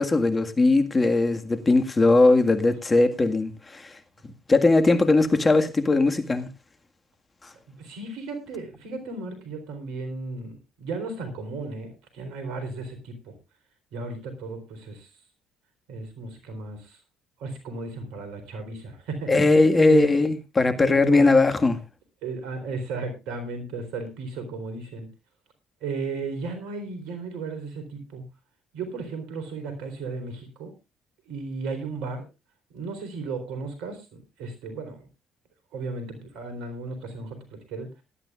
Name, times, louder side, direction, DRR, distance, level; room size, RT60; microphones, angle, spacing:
voice 1, 0.0-4.0 4.2-6.5 7.4-7.5 19.3-21.8, left 3 dB, 25° left, 1.8 m, -20 dB
voice 2, 7.8-13.3 13.9-15.1 15.9-17.0 17.4-19.3 19.8-20.0 20.8-21.3 22.2-25.1 25.8-28.3 28.7-30.7 31.3-32.3 32.7-35.0 35.7-37.9, right 4 dB, 75° right, 4.0 m, -35 dB
18.5 x 12.0 x 2.5 m
hypercardioid pair, 60°, 0 cm